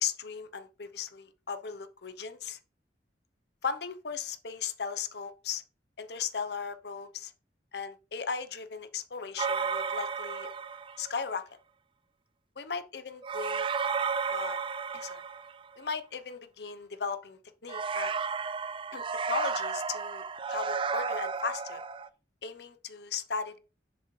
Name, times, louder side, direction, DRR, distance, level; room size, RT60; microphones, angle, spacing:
voice 1, 0.0-2.6 3.6-5.6 6.0-7.3 7.7-10.5 11.0-11.4 12.6-13.7 14.3-14.6 14.9-15.2 15.8-18.1 18.9-20.2 20.5-21.8 22.4-23.6, left 6 dB, 65° left, 0.8 m, -37 dB
sound 1, 9.4-11.1 13.2-15.8 17.7-22.1, right 5 dB, 30° right, 0.3 m, -33 dB
7.1 x 7.1 x 3.2 m
head